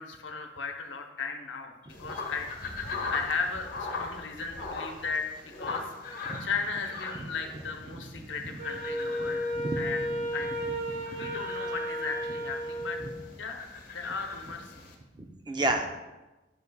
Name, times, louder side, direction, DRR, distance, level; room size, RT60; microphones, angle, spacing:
voice 1, 0.0-2.5 2.7-5.8 6.1-10.1 10.3-10.5 11.1-13.0 13.4-13.6 13.9-14.8, left 5 dB, 80° left, 4 dB, 0.9 m, -36 dB
sound 1, 1.9-14.9, left 3 dB, 50° left, 1.2 m, -41 dB
Wind instrument woodwind instrument, 8.6-13.2, equal, 65° right, 1.4 m, -33 dB
voice 2, 10.9-11.3 15.2-16.0, right 2 dB, 25° right, 4 dB, 0.5 m, -31 dB
10.5 x 6.6 x 2.3 m, 1.1 s
head